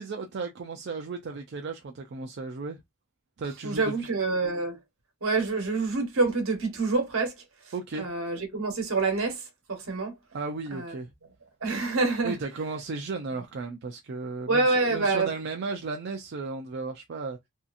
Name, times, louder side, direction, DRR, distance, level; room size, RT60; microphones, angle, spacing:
voice 1, 0.0-2.8 3.4-4.1 7.7-8.1 10.3-11.1 12.2-17.4, right 4 dB, 55° right, 0.4 m, -35 dB
voice 2, 3.6-4.8 5.2-7.3 8.0-10.1 10.7-10.9 11.6-12.4 14.5-15.3, right 3 dB, 70° right, 1.1 m, -26 dB
2.7 x 2.3 x 2.5 m
head